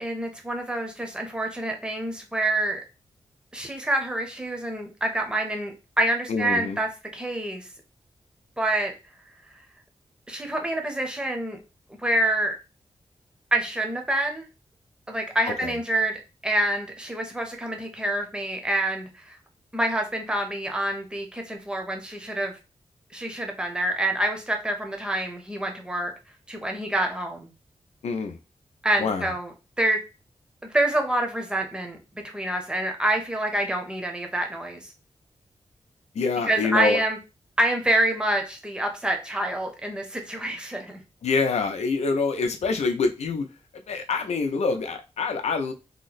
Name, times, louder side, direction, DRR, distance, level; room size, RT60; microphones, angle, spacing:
voice 1, 0.0-2.8 3.5-7.7 8.6-8.9 10.3-11.6 12.0-12.5 13.5-14.5 15.1-19.4 19.7-22.6 23.1-26.1 26.5-27.5 28.8-29.5 29.8-30.0 30.6-32.0 32.2-34.9 36.4-37.2 37.6-41.0, right 1 dB, 10° right, 0.6 m, -27 dB
voice 2, 6.3-6.8 15.6-15.7 28.0-28.4 29.0-29.3 36.1-37.0 41.2-43.5 43.9-45.7, left 4 dB, 90° left, 0.5 m, -25 dB
2.9 x 2.1 x 4.0 m
wide cardioid pair, 170°, 11 cm